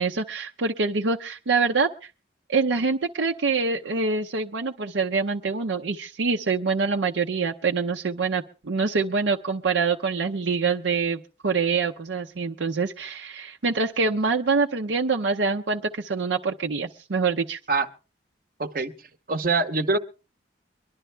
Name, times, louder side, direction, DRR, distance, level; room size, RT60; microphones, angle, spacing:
voice 1, 0.0-2.1 2.5-17.6, right 4 dB, 85° right, 2 dB, 0.7 m, -25 dB
voice 2, 18.6-18.9 19.3-20.0, right 3 dB, 50° right, 9 dB, 0.8 m, -24 dB
23.5 x 11.5 x 3.3 m, 0.33 s
head